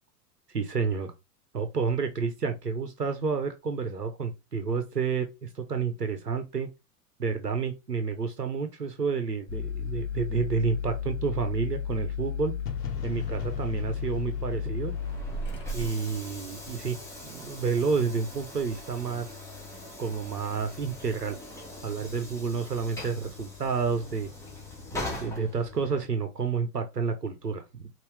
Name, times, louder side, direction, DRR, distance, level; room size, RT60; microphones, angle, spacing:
voice 1, 0.5-1.1 1.5-6.7 7.2-12.5 13.0-14.9 15.7-17.0 17.2-19.4 20.0-21.4 21.8-24.3 24.9-27.9, right 5 dB, 90° right, 0.9 m, -30 dB
sound 1, 9.5-15.9, left 6 dB, 20° left, 1.9 m, -33 dB
sound 2, 12.7-16.5, left 6 dB, 75° left, 1.0 m, -41 dB
Train / Sliding door, 14.7-26.2, left 2 dB, 5° left, 1.7 m, -42 dB
5.3 x 2.8 x 3.3 m
figure-of-eight pair, 95°, 47 cm